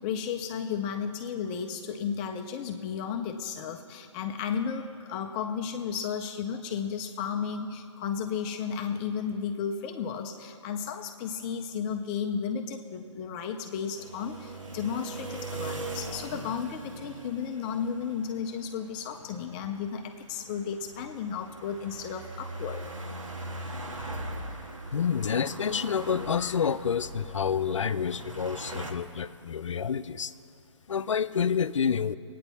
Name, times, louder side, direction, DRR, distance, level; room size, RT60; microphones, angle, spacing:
voice 1, 0.0-22.8, left 7 dB, 15° left, 5 dB, 0.4 m, -33 dB
sound 1, 14.0-28.9, right 2 dB, 90° right, 1.6 m, -41 dB
voice 2, 24.9-30.3 30.9-32.2, left 7 dB, 75° left, 14 dB, 0.5 m, -28 dB
21.5 x 9.1 x 4.1 m, 2.6 s
hypercardioid pair, 145°, 16 cm